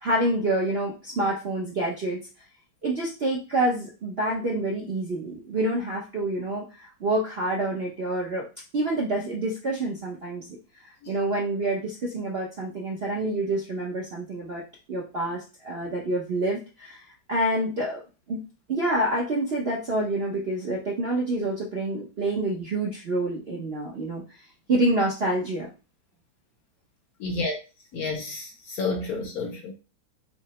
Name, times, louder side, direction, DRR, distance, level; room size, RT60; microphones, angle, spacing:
voice 1, 0.0-2.2 2.8-8.5 8.7-10.6 11.1-14.6 14.9-18.0 18.3-18.4 18.7-24.2 24.7-25.7, right 1 dB, 55° right, 0.7 m, -27 dB
voice 2, 27.2-27.6 27.9-29.7, left 3 dB, 60° left, 1.0 m, -30 dB
4.7 x 2.1 x 4.1 m
omnidirectional pair, 2.1 m